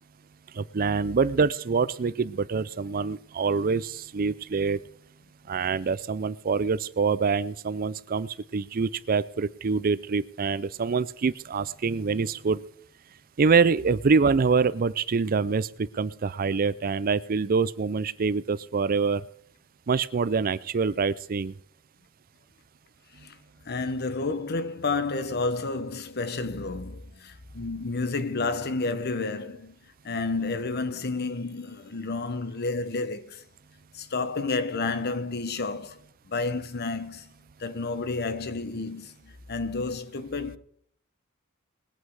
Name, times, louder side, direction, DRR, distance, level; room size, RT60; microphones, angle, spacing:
voice 1, 0.6-4.8 5.5-8.3 8.5-12.6 13.4-15.7 16.0-19.2 19.9-21.5, right 5 dB, 45° right, 0.5 m, -25 dB
voice 2, 23.7-29.7 30.0-33.4 33.9-36.0 36.3-37.3 37.6-40.6, left 3 dB, 50° left, 1.0 m, -30 dB
21.0 x 8.6 x 4.7 m
head